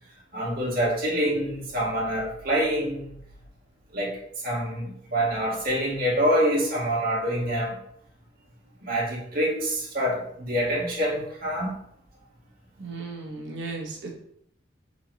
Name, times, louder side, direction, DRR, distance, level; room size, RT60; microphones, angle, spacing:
voice 1, 0.3-3.1 3.9-4.2 4.4-7.8 8.8-11.7, equal, 50° right, -5 dB, 1.7 m, -26 dB
voice 2, 12.8-14.1, right 3 dB, 80° right, 0 dB, 0.9 m, -35 dB
4.1 x 3.9 x 3.0 m, 0.70 s
head